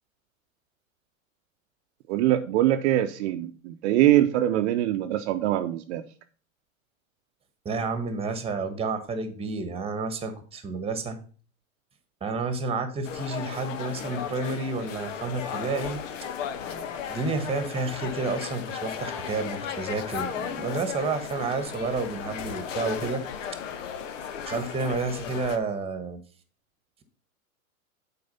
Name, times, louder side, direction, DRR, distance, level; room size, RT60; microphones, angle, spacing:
voice 1, 2.1-6.0, right 13 dB, 55° right, 0.8 m, -23 dB
voice 2, 7.6-11.2 12.2-16.0 17.1-23.2 24.4-26.2, right 3 dB, 15° right, 1.4 m, -30 dB
sound 1, 13.0-25.6, left 7 dB, 65° left, 1.3 m, -35 dB
7.9 x 4.9 x 5.5 m
hypercardioid pair, 115°, 41 cm